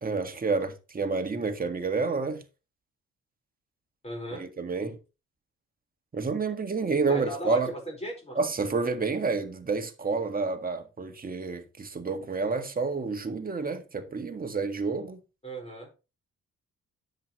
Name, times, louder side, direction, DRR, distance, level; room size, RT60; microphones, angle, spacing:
voice 1, 0.0-2.4 4.3-5.0 6.1-7.7 8.4-15.2, right 4 dB, 30° right, 1.8 m, -29 dB
voice 2, 4.0-4.4 7.1-8.4 15.4-15.9, right 1 dB, 20° left, 4.6 m, -36 dB
10.0 x 8.3 x 3.1 m
cardioid pair, 90°, 30 cm